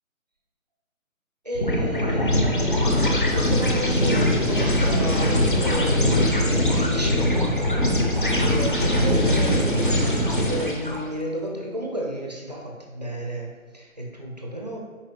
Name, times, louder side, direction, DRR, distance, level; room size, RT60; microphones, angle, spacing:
voice 1, 1.4-7.6 8.3-14.8, right 1 dB, 30° right, -1 dB, 0.5 m, -32 dB
sound 1, 1.5-11.0, left 1 dB, 40° left, 0.5 m, -21 dB
4.4 x 4.2 x 2.6 m, 1.4 s
figure-of-eight pair, 155°, 42 cm